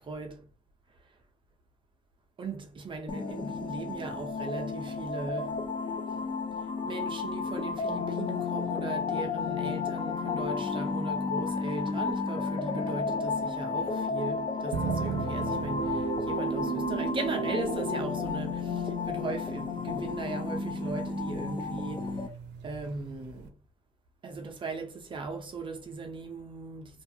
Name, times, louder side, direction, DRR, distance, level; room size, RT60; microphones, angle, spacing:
voice 1, 0.1-0.5 2.4-5.7 6.6-22.3 22.6-23.6 24.2-27.0, right 3 dB, 25° right, 0.6 m, -38 dB
sound 1, 3.1-22.3, left 5 dB, 25° left, 0.4 m, -32 dB
sound 2, 14.7-23.5, right 7 dB, 75° right, 0.5 m, -36 dB
2.6 x 2.4 x 2.6 m
cardioid pair, 135°, 18 cm